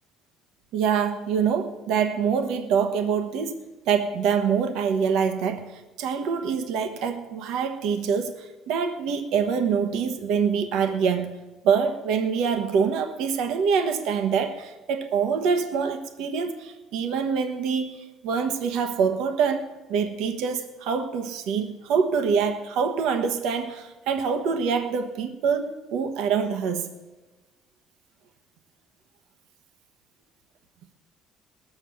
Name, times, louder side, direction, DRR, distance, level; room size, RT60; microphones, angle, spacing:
voice 1, 0.7-3.6 3.9-11.3 11.6-26.9, right 6 dB, 80° right, 7 dB, 1.1 m, -25 dB
20.0 x 7.0 x 6.9 m, 1.2 s
cardioid pair, 145°, 0 cm